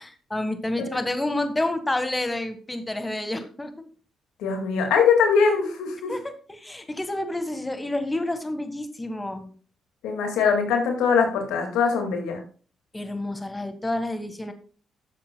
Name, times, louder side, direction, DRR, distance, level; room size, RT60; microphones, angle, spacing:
voice 1, 0.0-3.7 6.1-9.5 12.9-14.5, left 1 dB, 15° left, 8 dB, 1.5 m, -29 dB
voice 2, 4.4-6.1 10.0-12.4, left 6 dB, 80° left, 3 dB, 2.1 m, -22 dB
14.0 x 7.5 x 2.3 m, 0.40 s
supercardioid pair, 55°, 0 cm